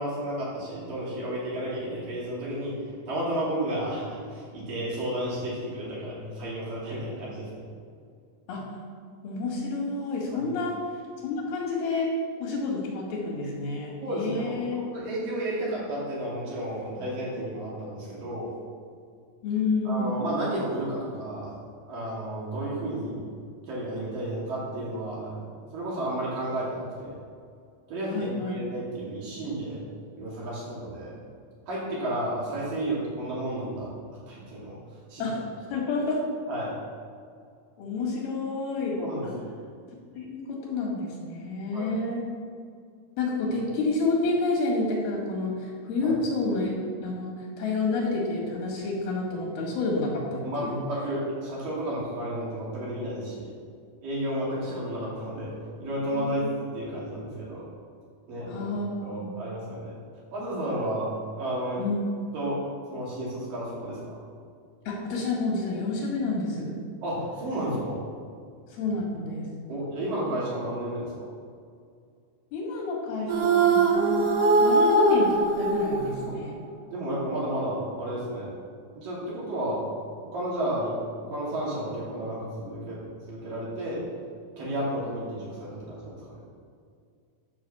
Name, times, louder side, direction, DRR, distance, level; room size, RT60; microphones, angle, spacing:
voice 1, 0.0-2.7 3.1-7.7 10.3-10.5 14.0-18.5 19.9-21.5 21.9-23.3 23.7-25.4 25.7-27.2 27.9-29.8 30.2-31.1 31.7-33.9 34.3-34.7 35.1-35.2 36.5-36.8 39.0-39.5 41.7-41.9 46.0-46.1 50.4-53.5 54.0-55.5 55.8-57.7 58.3-58.7 59.0-59.9 60.3-61.1 61.4-61.8 62.3-62.6 62.9-64.0 67.0-68.0 69.7-71.3 76.9-78.5 78.9-79.9 80.2-81.0 81.2-83.0 83.3-84.0 84.6-86.4, right 1 dB, 65° right, -7 dB, 4.6 m, -32 dB
voice 2, 9.2-10.8 11.2-12.1 12.4-14.8 19.4-20.2 28.1-28.6 35.2-35.4 35.7-36.2 37.8-39.0 39.2-39.3 40.2-42.3 43.2-46.7 47.0-50.8 56.1-56.4 58.5-59.5 61.8-62.1 64.9-66.8 68.7-69.5 72.5-74.3 74.6-76.6, left 3 dB, 85° left, -2 dB, 4.1 m, -29 dB
sound 1, 73.3-76.7, right 3 dB, 90° right, 1.3 m, -22 dB
11.0 x 5.6 x 7.1 m, 2.3 s
omnidirectional pair, 4.3 m